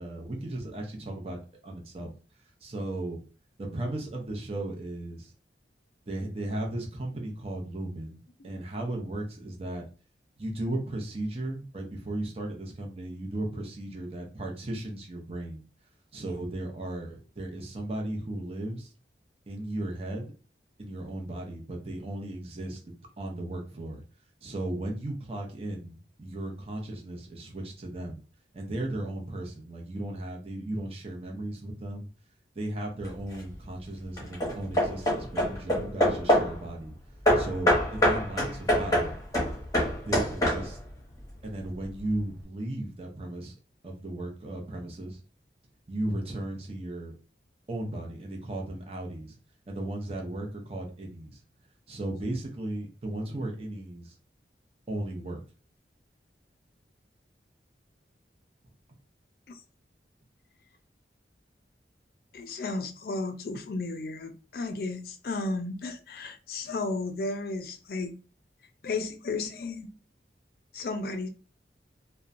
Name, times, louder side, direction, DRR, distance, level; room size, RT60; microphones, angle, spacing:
voice 1, 0.0-2.1 2.6-3.2 3.6-5.3 6.1-9.8 10.4-15.6 16.1-18.9 19.5-20.3 20.8-24.0 24.4-28.2 28.5-32.1 32.6-36.9 37.4-39.1 40.0-40.8 41.4-43.5 43.8-45.2 45.9-47.1 47.7-49.3 49.7-51.3 51.9-54.1 54.9-55.4, right 1 dB, 35° right, 0.6 m, -36 dB
Hammer / Wood, 33.0-33.5 34.2-36.6 37.3-40.9, equal, 20° left, 0.8 m, -25 dB
voice 2, 62.3-68.2 68.8-69.9 70.7-71.3, left 3 dB, 55° left, 0.4 m, -33 dB
2.9 x 2.1 x 2.5 m
head